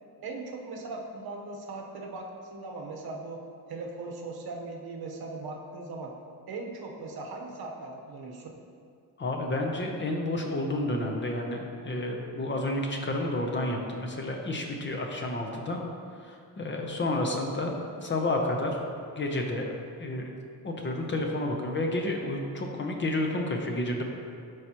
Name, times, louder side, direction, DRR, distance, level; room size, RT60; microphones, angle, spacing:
voice 1, 0.2-3.4 3.7-6.1 6.5-8.5, right 3 dB, 65° right, 1 dB, 1.1 m, -39 dB
voice 2, 9.2-15.8 16.2-18.8 19.2-19.7 20.0-20.3 20.6-24.0, left 1 dB, 30° left, 1 dB, 0.7 m, -30 dB
12.5 x 4.8 x 2.9 m, 2.3 s
wide cardioid pair, 165°, 40 cm